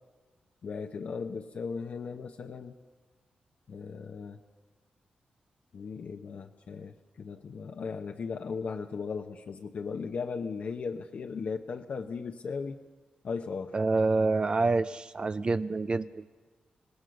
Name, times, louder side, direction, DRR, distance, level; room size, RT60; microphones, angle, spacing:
voice 1, 0.6-2.8 3.7-4.4 5.7-12.8 13.2-13.7, left 5 dB, 65° left, 3 dB, 0.9 m, -37 dB
voice 2, 13.7-16.3, right 3 dB, 35° right, 12 dB, 0.6 m, -27 dB
25.5 x 19.0 x 6.6 m, 1.4 s
wide cardioid pair, 100°, 3 cm